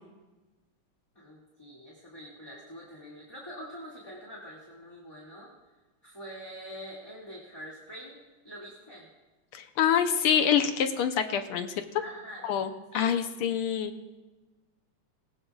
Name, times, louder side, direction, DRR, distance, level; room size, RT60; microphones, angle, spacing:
voice 1, 1.2-5.5 6.0-8.2 8.4-9.1 12.0-12.4 12.9-13.1, equal, 10° left, -4 dB, 2.1 m, -45 dB
voice 2, 9.5-11.7 12.4-13.9, left 8 dB, 80° left, 7 dB, 1.7 m, -26 dB
20.5 x 19.0 x 2.4 m, 1.2 s
omnidirectional pair, 2.4 m